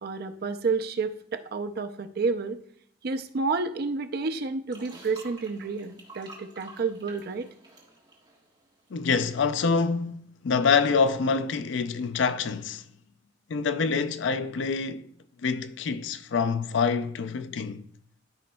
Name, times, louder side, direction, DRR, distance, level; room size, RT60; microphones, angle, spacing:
voice 1, 0.0-2.6 3.0-7.5, right 4 dB, 50° right, 0.5 m, -30 dB
sound 1, 4.7-9.2 9.4-9.6, right 2 dB, 25° right, 1.5 m, -50 dB
voice 2, 8.9-12.8 13.5-15.0 15.4-17.8, left 5 dB, 65° left, 0.4 m, -26 dB
13.0 x 5.1 x 2.2 m
head